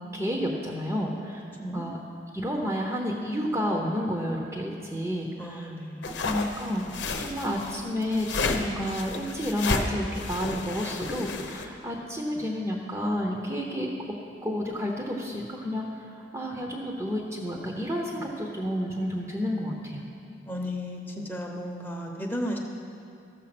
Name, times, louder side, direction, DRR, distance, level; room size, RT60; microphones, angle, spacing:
voice 1, 0.1-2.0 2.3-5.7 6.1-13.9 14.4-20.0, equal, 15° right, 0 dB, 0.8 m, -31 dB
voice 2, 5.4-6.2 20.5-22.6, equal, 10° left, 1 dB, 0.9 m, -34 dB
sound 1, 6.0-11.7, left 3 dB, 80° left, 0.9 m, -32 dB
14.0 x 6.9 x 6.0 m, 2.6 s
head